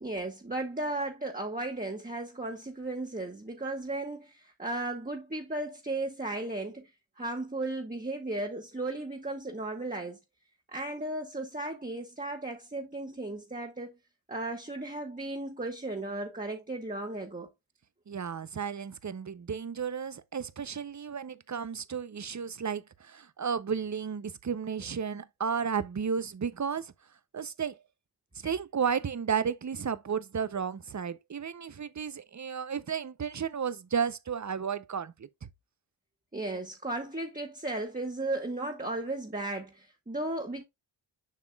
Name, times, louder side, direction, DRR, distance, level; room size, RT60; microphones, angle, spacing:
voice 1, 0.0-6.9 7.2-10.2 10.7-13.9 14.3-17.5 36.3-40.6, right 2 dB, 15° right, 1.7 m, -35 dB
voice 2, 18.1-26.9 27.3-27.8 28.3-35.3, right 6 dB, 35° right, 0.7 m, -33 dB
7.3 x 5.9 x 2.3 m
cardioid pair, 50°, 48 cm